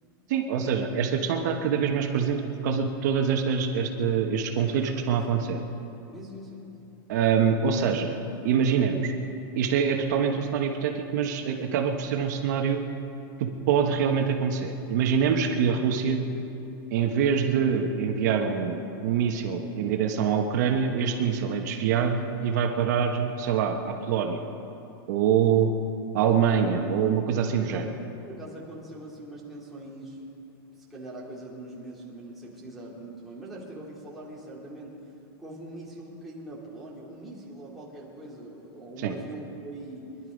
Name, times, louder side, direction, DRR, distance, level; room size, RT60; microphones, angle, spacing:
voice 1, 0.3-5.6 7.1-8.2 8.4-9.1 9.5-12.8 13.4-16.2 16.9-24.4 25.1-25.7 26.1-27.9 39.0-39.1, right 7 dB, 45° right, 3 dB, 1.3 m, -25 dB
voice 2, 4.7-5.5 6.1-6.7 27.6-28.0 28.3-30.2 30.8-35.0 35.4-40.0, right 1 dB, ahead, -8 dB, 2.7 m, -42 dB
24.5 x 11.5 x 5.2 m, 2.9 s
supercardioid pair, 175°, 13 cm